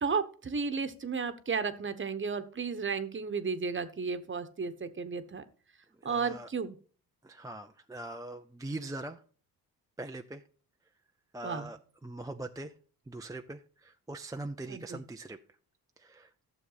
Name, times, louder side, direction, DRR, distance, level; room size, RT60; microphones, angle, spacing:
voice 1, 0.0-5.4 6.0-6.8 11.4-11.7 14.7-15.0, right 5 dB, 30° right, 11 dB, 1.1 m, -33 dB
voice 2, 6.0-6.5 7.2-9.2 10.0-10.4 11.3-12.7 13.1-15.4 16.0-16.3, right 2 dB, 10° right, 6 dB, 0.5 m, -42 dB
12.5 x 7.1 x 4.0 m, 0.42 s
cardioid pair, 95°, 38 cm